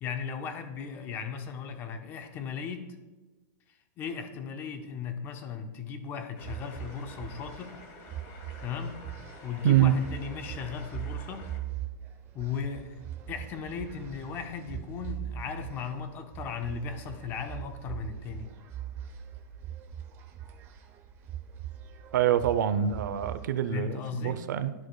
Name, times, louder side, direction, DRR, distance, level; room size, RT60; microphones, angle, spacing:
voice 1, 0.0-2.8 4.0-7.7 8.6-9.0 9.4-11.4 12.3-12.9 13.3-18.5 23.7-24.4, left 6 dB, 20° left, 7 dB, 0.6 m, -37 dB
sound 1, 6.3-11.6, left 2 dB, 40° left, 1.5 m, -50 dB
sound 2, 6.4-23.5, right 11 dB, 25° right, 0.7 m, -41 dB
voice 2, 22.1-24.7, right 11 dB, 70° right, 11 dB, 0.6 m, -25 dB
13.5 x 4.8 x 2.3 m, 1.2 s
supercardioid pair, 165°, 10 cm